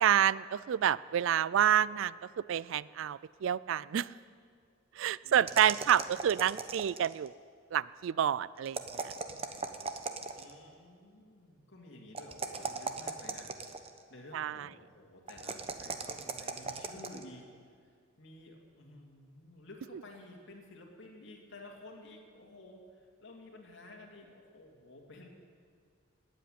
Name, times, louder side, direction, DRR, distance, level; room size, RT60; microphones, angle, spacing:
voice 1, 0.0-2.1 2.5-4.1 5.0-7.3 7.7-8.8 14.3-14.6, right 9 dB, 65° right, 20 dB, 0.3 m, -28 dB
voice 2, 5.2-6.1 10.3-17.5 17.8-25.3, left 1 dB, 60° left, 0 dB, 2.8 m, -53 dB
sound 1, 5.5-7.3 8.7-10.6 12.1-14.0 15.3-17.2, right 4 dB, 30° right, 0.9 m, -38 dB
18.5 x 8.4 x 9.3 m, 2.1 s
head